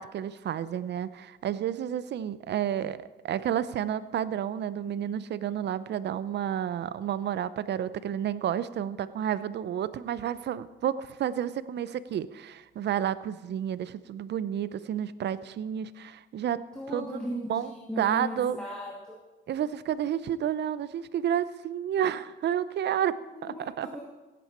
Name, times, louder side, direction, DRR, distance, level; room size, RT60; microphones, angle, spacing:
voice 1, 0.0-3.0 3.2-18.6 19.5-23.2 23.4-23.9, right 10 dB, 60° right, 16 dB, 0.6 m, -31 dB
voice 2, 16.7-19.2 23.3-24.0, left 1 dB, 5° left, -4 dB, 2.3 m, -37 dB
16.5 x 9.2 x 4.4 m, 1.1 s
cardioid pair, 90°, 20 cm